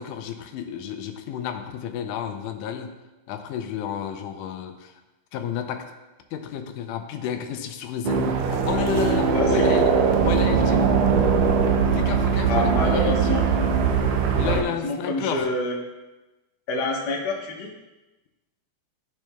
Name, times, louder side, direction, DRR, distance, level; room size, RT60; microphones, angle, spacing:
voice 1, 0.0-3.0 3.3-4.9 5.3-5.9 6.3-9.9 10.2-10.9 11.9-13.4 14.4-15.5, left 8 dB, 90° left, 6 dB, 2.1 m, -31 dB
sound 1, 8.0-14.6, right 6 dB, 85° right, 1.5 m, -21 dB
voice 2, 9.3-9.7 12.4-13.5 14.4-15.7 16.7-17.7, left 2 dB, 70° left, -2 dB, 0.9 m, -27 dB
13.5 x 4.5 x 2.2 m, 1.1 s
omnidirectional pair, 3.5 m